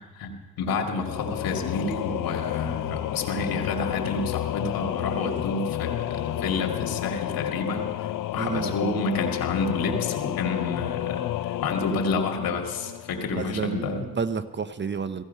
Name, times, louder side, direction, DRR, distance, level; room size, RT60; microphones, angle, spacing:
voice 1, 0.0-11.3 11.6-14.0, left 3 dB, 80° left, 2 dB, 2.4 m, -29 dB
Singing / Musical instrument, 1.0-13.6, left 13 dB, 65° left, 0.5 m, -31 dB
voice 2, 8.4-8.7 13.4-15.2, right 5 dB, 30° right, 12 dB, 0.8 m, -30 dB
16.5 x 15.0 x 5.6 m, 1.3 s
cardioid pair, 75°, 35 cm